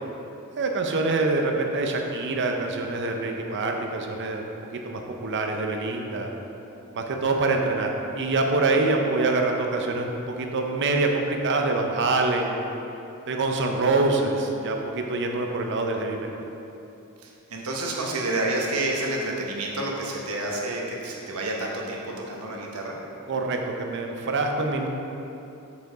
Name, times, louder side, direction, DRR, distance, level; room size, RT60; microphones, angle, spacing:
voice 1, 0.6-6.3 6.9-12.6 13.3-16.3 23.3-24.9, right 3 dB, 55° right, 3 dB, 0.7 m, -25 dB
voice 2, 17.2-22.0 22.3-22.9, right 2 dB, 75° right, -1 dB, 1.1 m, -29 dB
7.0 x 5.0 x 3.9 m, 2.9 s
head